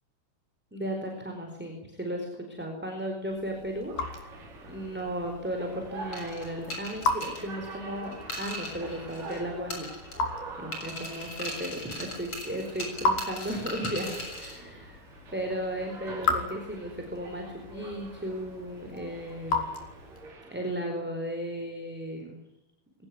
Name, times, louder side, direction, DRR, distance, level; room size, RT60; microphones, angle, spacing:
voice 1, 0.7-4.4 4.7-9.9 10.2-19.8 20.5-22.4, equal, 5° right, 2 dB, 4.2 m, -35 dB
Raindrop / Drip, 3.2-20.4, left 3 dB, 75° left, 5.8 m, -36 dB
sound 1, 3.9-20.7, right 4 dB, 60° right, 5.7 m, -46 dB
sound 2, 6.1-9.4 9.7-10.4 10.7-14.6, left 1 dB, 30° left, 7.9 m, -39 dB
23.5 x 19.5 x 9.7 m, 0.84 s
omnidirectional pair, 4.2 m